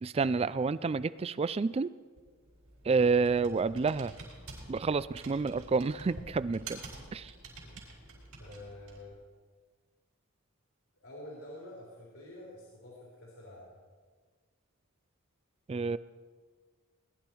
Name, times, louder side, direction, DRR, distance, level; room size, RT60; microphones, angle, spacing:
voice 1, 0.0-1.9 2.8-4.1 4.7-6.8 7.1-7.3 15.7-16.0, right 4 dB, 25° right, 17 dB, 0.3 m, -29 dB
Computer keyboard, 2.2-9.1, right 3 dB, 80° right, 5.0 m, -49 dB
voice 2, 8.4-9.2 11.0-13.7, left 1 dB, 65° left, -5 dB, 3.5 m, -48 dB
20.5 x 11.5 x 4.5 m, 1.5 s
head